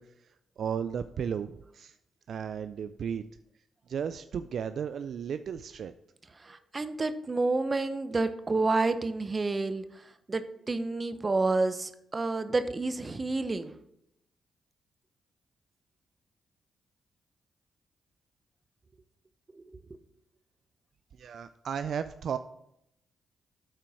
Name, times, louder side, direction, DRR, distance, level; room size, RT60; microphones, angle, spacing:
voice 1, 0.0-2.0 2.3-3.2 3.9-6.0 21.1-22.4, right 7 dB, 70° right, 11 dB, 0.3 m, -35 dB
voice 2, 6.4-13.7 19.5-20.0, right 3 dB, 35° right, 11 dB, 0.8 m, -30 dB
9.0 x 4.5 x 4.8 m, 0.78 s
supercardioid pair, 55°, 0 cm